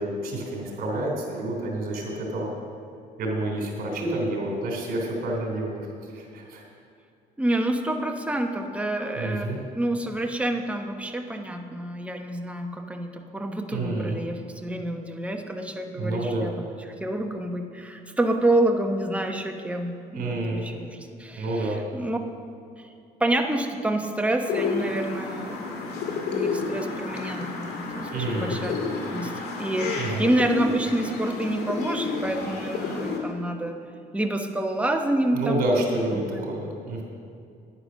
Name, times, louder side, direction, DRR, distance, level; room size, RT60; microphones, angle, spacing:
voice 1, 0.0-2.5 3.2-6.6 9.1-9.6 13.7-14.2 15.8-16.5 20.1-20.7 21.4-21.8 28.1-28.6 29.9-30.3 35.3-37.0, right 1 dB, 60° right, 0 dB, 3.4 m, -29 dB
voice 2, 7.4-16.7 17.0-22.2 22.8-22.9 23.2-25.6 26.3-28.8 29.1-29.3 29.6-33.8 34.1-35.6 36.1-36.5, right 1 dB, 5° right, 4 dB, 1.1 m, -28 dB
sound 1, 24.4-33.2, left 4 dB, 75° left, 2.0 m, -31 dB
9.9 x 9.8 x 6.4 m, 2.4 s
cardioid pair, 110°, 17 cm